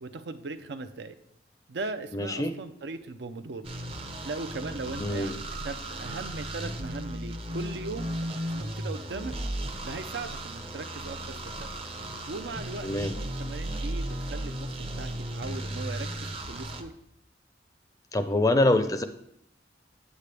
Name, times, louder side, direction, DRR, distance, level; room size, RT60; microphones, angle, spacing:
voice 1, 0.0-1.2 1.7-3.6 4.2-9.3 9.8-11.7 12.3-12.9 13.4-16.9, right 3 dB, 70° right, 10 dB, 0.6 m, -38 dB
voice 2, 2.1-2.6 5.0-5.4 12.8-13.2 18.1-19.0, left 2 dB, 20° left, 9 dB, 0.5 m, -25 dB
sound 1, 3.6-16.8, right 1 dB, 30° right, 0.7 m, -35 dB
8.3 x 8.3 x 3.3 m, 0.74 s
head